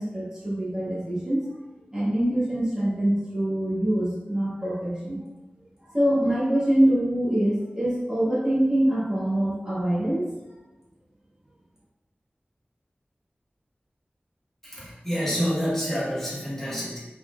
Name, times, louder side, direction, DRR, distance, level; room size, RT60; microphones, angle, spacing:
voice 1, 0.0-1.4 1.9-5.2 5.8-10.3, right 1 dB, 15° right, -8 dB, 1.3 m, -24 dB
voice 2, 14.6-17.0, equal, 10° left, -8 dB, 1.5 m, -28 dB
4.2 x 3.9 x 2.5 m, 1.1 s
wide cardioid pair, 65°, 4 cm